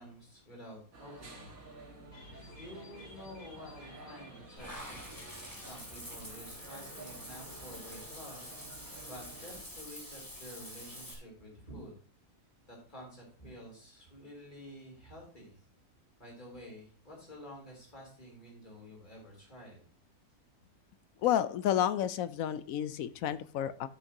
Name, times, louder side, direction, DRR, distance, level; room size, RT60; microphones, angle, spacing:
voice 1, 0.0-1.5 2.6-5.2 5.5-11.9 12.7-15.5 16.2-19.8, equal, 30° left, -2 dB, 3.9 m, -50 dB
sound 1, 0.9-9.6, right 2 dB, 70° right, 2.3 m, -51 dB
sound 2, 2.1-5.6 5.8-5.9 6.2-6.3, left 1 dB, 55° left, 5.5 m, -55 dB
Water / Bathtub (filling or washing), 4.6-11.1, equal, 15° left, 2.3 m, -47 dB
voice 2, 21.2-23.9, left 11 dB, 75° left, 14 dB, 1.0 m, -30 dB
13.5 x 6.4 x 2.9 m, 0.42 s
omnidirectional pair, 1.6 m